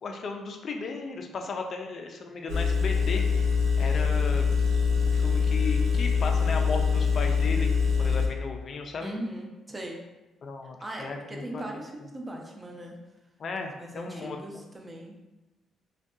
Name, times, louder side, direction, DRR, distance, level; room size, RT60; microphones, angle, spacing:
voice 1, 0.0-4.5 5.1-7.7 8.0-9.1 10.4-11.6 13.4-14.6, left 4 dB, 50° left, 3 dB, 0.3 m, -35 dB
Engine, 2.5-8.3, left 5 dB, 85° right, 0.5 m, -24 dB
voice 2, 9.0-10.0 10.8-13.0 13.8-15.1, right 1 dB, 20° right, 1 dB, 0.4 m, -39 dB
2.6 x 2.2 x 2.3 m, 1.0 s
cardioid pair, 90°, 0 cm